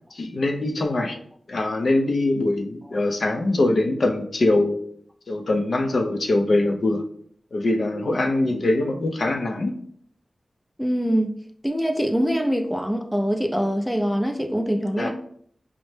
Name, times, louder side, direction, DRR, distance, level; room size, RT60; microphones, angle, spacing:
voice 1, 0.1-1.2 1.5-4.8 5.3-7.0 7.5-9.8 15.0-15.1, left 2 dB, 65° left, 4 dB, 0.5 m, -23 dB
voice 2, 10.8-11.4 11.6-15.1, equal, 5° left, 3 dB, 0.3 m, -23 dB
5.3 x 2.0 x 3.2 m, 0.62 s
wide cardioid pair, 115°, 0 cm